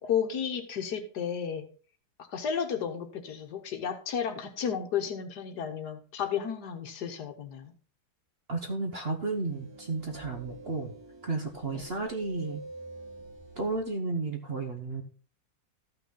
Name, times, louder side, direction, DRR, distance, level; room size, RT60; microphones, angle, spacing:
voice 1, 0.0-1.6 2.3-7.7 11.7-11.8, left 7 dB, 65° left, 7 dB, 1.6 m, -32 dB
voice 2, 8.5-10.9 11.2-12.6 13.6-15.0, right 3 dB, 40° right, 4 dB, 1.0 m, -33 dB
sound 1, 9.2-13.9, right 2 dB, 20° right, 0.7 m, -47 dB
13.5 x 6.0 x 3.8 m, 0.39 s
omnidirectional pair, 1.9 m